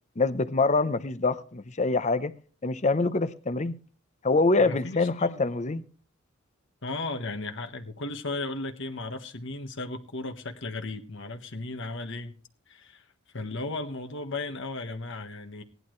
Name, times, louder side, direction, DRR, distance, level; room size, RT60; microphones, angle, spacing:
voice 1, 0.2-2.3 2.6-3.8 4.2-5.8, left 3 dB, 35° left, 0.7 m, -25 dB
voice 2, 4.6-5.4 6.8-12.4 12.7-13.0 13.3-15.6, left 2 dB, 60° left, 1.4 m, -35 dB
17.5 x 11.0 x 3.2 m
head